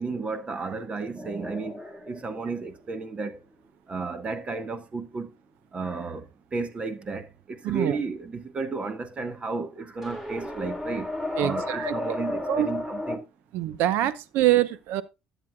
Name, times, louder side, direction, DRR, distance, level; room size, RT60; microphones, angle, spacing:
voice 1, 0.0-3.4 3.9-5.3 5.7-6.3 6.5-11.1 11.4-13.2 14.0-14.1, right 4 dB, 35° right, 1.7 m, -33 dB
sound 1, 1.2-3.5 10.0-13.2, left 2 dB, 10° right, 3.3 m, -33 dB
voice 2, 7.6-8.0 11.4-12.1 12.5-12.7 13.5-15.0, right 13 dB, 75° right, 0.9 m, -25 dB
13.5 x 8.2 x 2.4 m
supercardioid pair, 80°, 3 cm